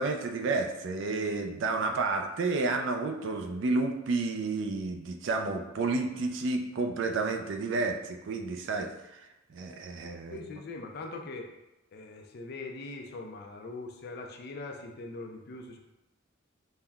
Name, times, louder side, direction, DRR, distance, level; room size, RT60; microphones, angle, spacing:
voice 1, 0.0-10.4, right 3 dB, 65° right, 5 dB, 0.4 m, -31 dB
voice 2, 10.3-11.5 11.9-15.8, left 3 dB, 55° left, 2 dB, 0.4 m, -41 dB
5.3 x 2.1 x 2.3 m, 0.94 s
head